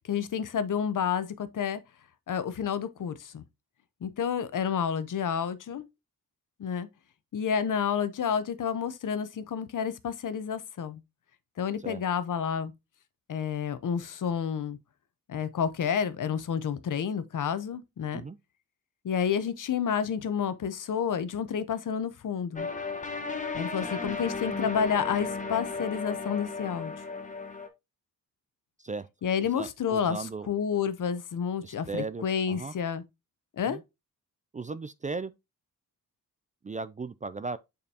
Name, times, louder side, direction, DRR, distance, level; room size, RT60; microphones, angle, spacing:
voice 1, 0.1-1.8 2.3-3.4 4.0-5.8 6.6-6.9 7.3-11.0 11.6-12.7 13.3-14.8 15.3-18.2 19.0-22.7 23.5-26.9 29.2-33.0 33.6-33.8, left 7 dB, 60° left, 0.8 m, -30 dB
sound 1, 22.6-27.7, left 4 dB, 20° left, 1.1 m, -34 dB
voice 2, 29.5-30.5 31.6-32.7 33.7-33.8 34.5-35.3 36.6-37.6, right 4 dB, 25° right, 0.3 m, -36 dB
6.7 x 5.2 x 2.7 m
cardioid pair, 85°, 35 cm